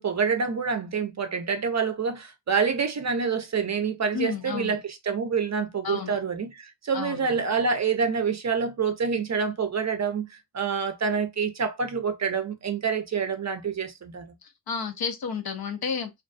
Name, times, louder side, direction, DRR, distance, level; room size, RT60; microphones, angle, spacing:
voice 1, 0.0-14.3, right 5 dB, 40° right, 0.5 m, -27 dB
voice 2, 4.1-4.8 5.8-6.2 6.9-7.4 14.7-16.1, left 6 dB, 60° left, 0.6 m, -31 dB
2.5 x 2.2 x 2.5 m
wide cardioid pair, 110°, 42 cm